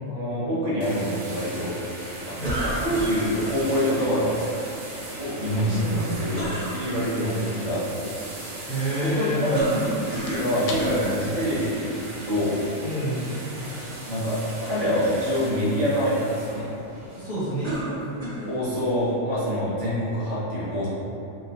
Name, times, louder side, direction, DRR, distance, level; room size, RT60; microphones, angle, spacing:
voice 1, 0.1-1.7 2.3-4.5 5.2-6.4 6.7-8.1 8.6-8.7 9.0-9.3 9.6-9.8 10.3-12.6 14.0-16.7 18.5-20.9, equal, 60° right, -9 dB, 1.3 m, -26 dB
sound 1, 0.8-19.1, right 1 dB, 80° right, 1.1 m, -38 dB
sound 2, 2.4-3.6 6.3-6.8 9.5-10.5 10.8-11.2 12.0-12.1 17.6-18.5, right 1 dB, 40° right, 1.2 m, -30 dB
sound 3, 3.6-12.6, left 2 dB, 70° left, 0.8 m, -45 dB
voice 2, 5.8-6.4 8.7-9.6 12.8-13.4 17.1-17.7, equal, 40° left, -11 dB, 0.8 m, -28 dB
2.9 x 2.4 x 4.1 m, 2.9 s
omnidirectional pair, 1.4 m